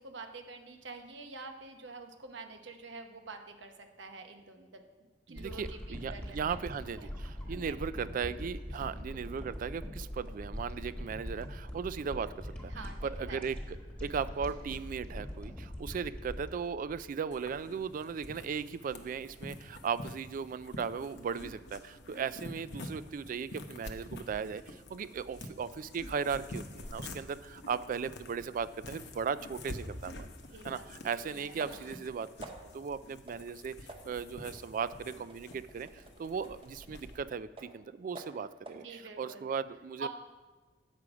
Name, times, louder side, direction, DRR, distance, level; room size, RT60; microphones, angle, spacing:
voice 1, 0.0-4.8 5.3-6.6 7.0-7.1 7.5-7.8 8.7-8.8 12.7-13.4 30.5-30.9 31.2-32.0 38.8-39.4 40.0-40.1, right 3 dB, 85° right, 6 dB, 0.9 m, -47 dB
voice 2, 5.3-13.6 14.0-30.3 30.6-32.3 32.7-33.7 34.1-40.1, right 6 dB, 50° right, 15 dB, 0.3 m, -37 dB
sound 1, 5.4-17.7 18.1-18.2, equal, 5° left, 1.3 m, -42 dB
sound 2, 17.3-37.2, left 1 dB, 70° left, 0.8 m, -47 dB
sound 3, 30.4-30.5 31.6-32.0 32.4-32.9 33.3-33.5 33.9-37.8 38.1-38.9, right 2 dB, 30° right, 0.8 m, -51 dB
8.2 x 6.3 x 4.8 m, 1.3 s
head